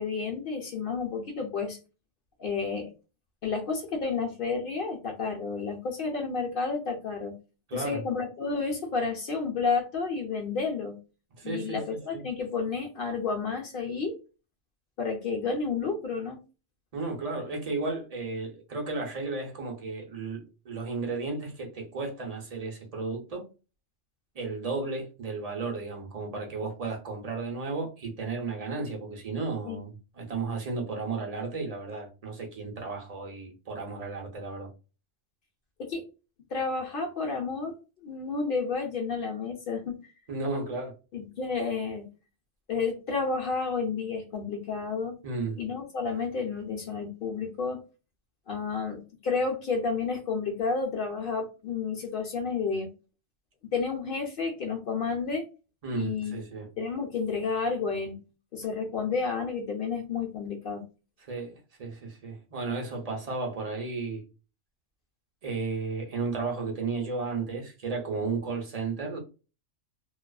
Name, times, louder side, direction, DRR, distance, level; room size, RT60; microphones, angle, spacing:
voice 1, 0.0-1.8 2.4-2.9 3.4-7.3 7.7-11.0 11.4-14.2 15.0-16.4 29.7-29.8 35.8-36.0 36.5-40.1 41.1-42.1 42.7-45.1 45.6-47.8 48.5-52.9 53.7-55.5 55.9-56.4 56.8-58.2 58.5-60.8, left 4 dB, 60° left, 0.6 m, -31 dB
voice 2, 7.7-8.0 11.4-11.8 12.1-12.2 16.9-23.5 24.3-34.7 40.3-40.9 45.2-45.6 55.8-56.7 61.2-64.3 65.4-69.2, right 3 dB, 40° right, 0.6 m, -34 dB
2.3 x 2.3 x 2.2 m
omnidirectional pair, 1.2 m